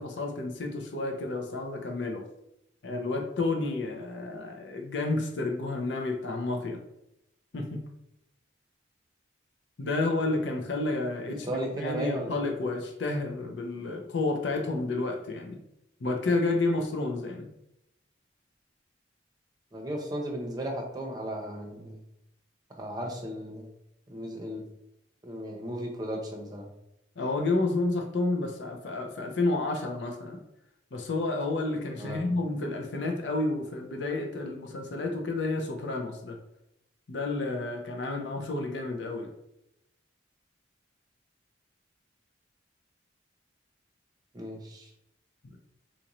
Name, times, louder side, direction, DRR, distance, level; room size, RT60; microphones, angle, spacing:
voice 1, 0.0-2.2 2.8-6.8 7.5-7.8 9.8-15.6 16.0-17.5 27.2-30.4 30.9-36.4 37.1-39.3, left 2 dB, 70° left, 3 dB, 0.6 m, -30 dB
voice 2, 11.4-12.3 19.7-22.0 22.7-23.7 24.1-24.6 25.2-26.7 31.9-32.3 44.3-44.9, right 1 dB, 20° right, 0 dB, 0.6 m, -35 dB
4.1 x 2.6 x 2.9 m, 0.82 s
head